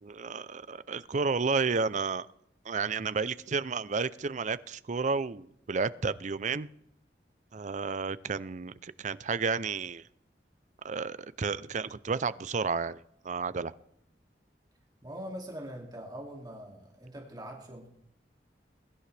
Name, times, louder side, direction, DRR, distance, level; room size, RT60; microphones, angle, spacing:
voice 1, 0.0-2.3 2.7-6.7 7.5-10.0 10.8-13.0 13.2-13.7, right 4 dB, 45° right, 16 dB, 0.5 m, -31 dB
voice 2, 15.0-17.9, equal, 25° right, 0 dB, 2.4 m, -42 dB
22.0 x 11.0 x 3.4 m, 0.74 s
head